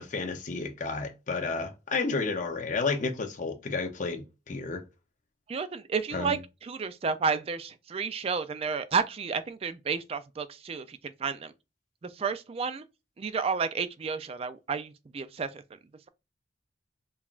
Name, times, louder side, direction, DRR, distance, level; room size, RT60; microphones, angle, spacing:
voice 1, 0.0-4.8 6.1-6.4, left 4 dB, 45° left, 0.6 m, -31 dB
voice 2, 5.5-11.5 12.0-12.8 13.2-15.6, right 5 dB, 35° right, 0.3 m, -31 dB
5.4 x 2.3 x 2.4 m
head